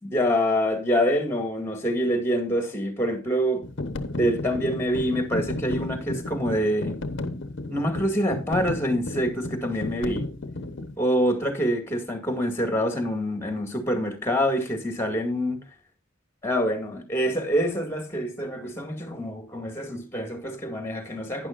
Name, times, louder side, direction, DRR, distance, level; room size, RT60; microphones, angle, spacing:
voice 1, 0.0-3.6 4.1-6.9 7.7-10.3 11.0-15.6 16.4-21.5, equal, 10° left, 2.0 m, -26 dB
sound 1, 3.6-11.0, left 2 dB, 60° left, 0.9 m, -33 dB
11.5 x 9.8 x 2.5 m
head